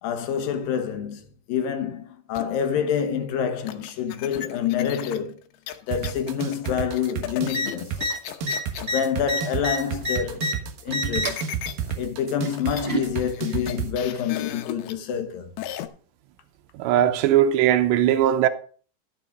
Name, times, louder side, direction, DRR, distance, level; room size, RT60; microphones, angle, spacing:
voice 1, 0.0-5.4 5.9-8.0 8.8-10.5 10.8-11.5 12.0-15.5, left 8 dB, 65° left, 2.6 m, -27 dB
sound 1, 2.3-2.7 3.7-8.9 11.2-11.9 12.3-12.4 12.6-12.9 13.2-14.9 15.6-15.9, left 12 dB, 85° left, 3.1 m, -36 dB
sound 2, 5.9-13.9, right 7 dB, 65° right, 2.7 m, -30 dB
sound 3, 7.5-7.7 7.9-8.1 8.4-10.5 10.9-11.4 12.4-13.1 14.1-14.2, equal, 35° right, 0.9 m, -27 dB
voice 2, 16.7-18.5, right 11 dB, 85° right, 3.1 m, -19 dB
12.0 x 7.3 x 5.2 m
omnidirectional pair, 4.9 m